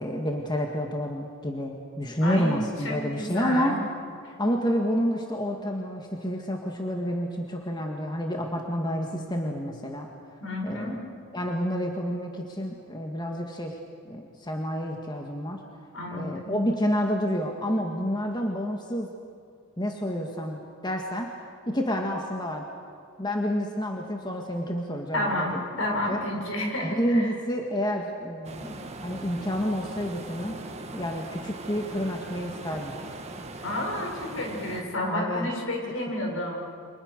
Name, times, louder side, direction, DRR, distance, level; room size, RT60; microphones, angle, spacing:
voice 1, 0.0-3.8 4.4-10.1 10.6-11.0 11.3-13.7 14.1-15.6 16.1-19.1 19.8-21.3 21.7-22.7 23.2-25.6 26.1-26.2 26.8-30.6 30.9-32.9 35.1-35.5, equal, 20° left, 1 dB, 1.9 m, -29 dB
voice 2, 2.2-3.8 4.2-4.3 10.4-11.0 15.9-16.6 25.1-27.3 33.6-36.5, left 1 dB, 65° left, 1 dB, 6.6 m, -30 dB
sound 1, 28.4-34.8, right 2 dB, 30° right, 1.8 m, -40 dB
29.5 x 25.5 x 6.7 m, 2.3 s
head